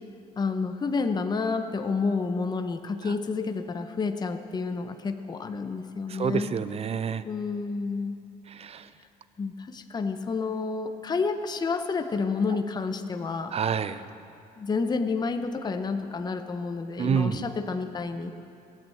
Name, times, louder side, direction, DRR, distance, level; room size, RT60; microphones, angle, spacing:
voice 1, 0.4-6.5 7.2-8.2 9.4-13.5 14.6-18.3, left 4 dB, 25° left, 8 dB, 0.8 m, -29 dB
voice 2, 6.1-7.2 8.5-8.9 13.5-14.1 17.0-17.4, right 7 dB, 35° right, 13 dB, 0.6 m, -28 dB
18.0 x 9.1 x 7.7 m, 2.5 s
cardioid pair, 110°, 17 cm